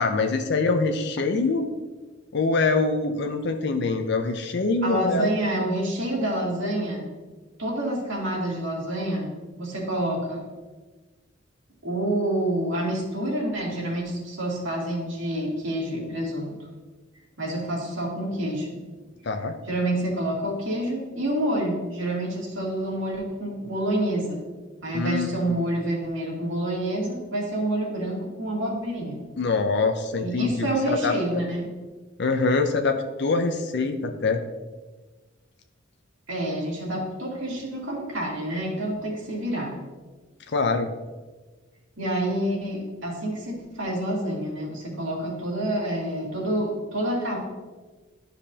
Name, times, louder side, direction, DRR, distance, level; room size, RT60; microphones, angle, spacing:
voice 1, 0.0-1.7 2.3-5.3 19.2-19.6 24.9-25.6 29.4-31.1 32.2-34.4 40.5-40.9, left 3 dB, 60° left, 6 dB, 0.5 m, -24 dB
voice 2, 4.8-7.1 7.6-10.4 11.8-16.6 17.4-18.8 19.6-24.4 24.8-29.2 30.1-31.7 36.3-39.8 42.0-47.4, right 1 dB, 80° right, -4 dB, 2.4 m, -28 dB
12.5 x 5.0 x 2.8 m, 1.3 s
head